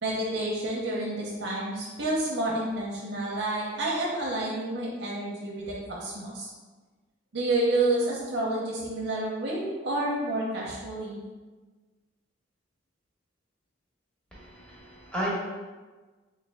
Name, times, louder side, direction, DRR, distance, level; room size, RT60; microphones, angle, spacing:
voice 1, 0.0-6.5 7.3-11.2, right 2 dB, 60° right, -4 dB, 0.6 m, -29 dB
voice 2, 14.3-15.3, equal, 5° left, -8 dB, 1.0 m, -34 dB
3.3 x 3.3 x 3.4 m, 1.3 s
head